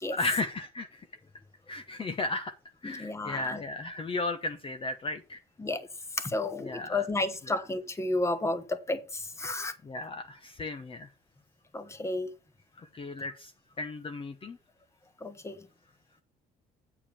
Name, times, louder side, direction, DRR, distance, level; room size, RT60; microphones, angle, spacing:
voice 1, 0.1-1.0 1.7-2.5 2.8-5.4 6.6-7.1 7.4-7.6 9.8-11.1 12.8-13.5 13.8-14.6, left 2 dB, 30° left, 1.0 m, -35 dB
voice 2, 2.8-3.6 5.6-5.8 6.2-9.7 11.7-12.3 15.2-15.6, left 2 dB, 15° left, 1.3 m, -32 dB
8.9 x 4.7 x 7.0 m
cardioid pair, 110°, 17 cm